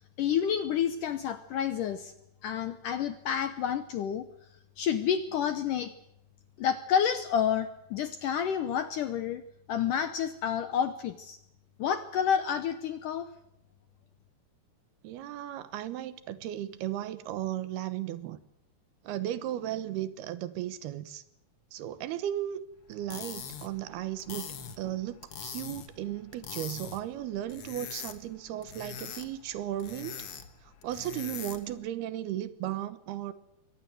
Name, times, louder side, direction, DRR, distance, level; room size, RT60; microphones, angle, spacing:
voice 1, 0.2-2.1 2.4-4.2 4.8-5.9 6.6-9.4 9.7-11.4 11.8-13.3, left 8 dB, 70° left, 2.0 m, -29 dB
voice 2, 15.0-18.4 19.0-21.2 21.7-22.6 22.9-30.3 30.6-33.3, right 12 dB, 75° right, 2.9 m, -35 dB
sound 1, 22.9-31.8, left 7 dB, 55° left, 1.7 m, -43 dB
23.0 x 19.0 x 7.7 m
omnidirectional pair, 4.8 m